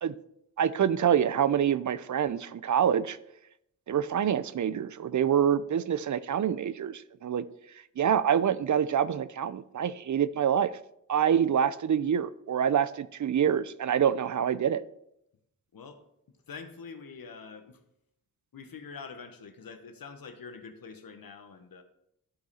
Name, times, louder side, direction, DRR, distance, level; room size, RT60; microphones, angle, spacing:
voice 1, 0.6-3.2 3.9-7.4 8.0-10.7 11.1-14.8, right 8 dB, 60° right, 16 dB, 0.5 m, -26 dB
voice 2, 16.5-17.8 18.5-21.8, left 5 dB, 85° left, 7 dB, 1.1 m, -45 dB
11.5 x 5.3 x 4.2 m, 0.77 s
wide cardioid pair, 115°, 34 cm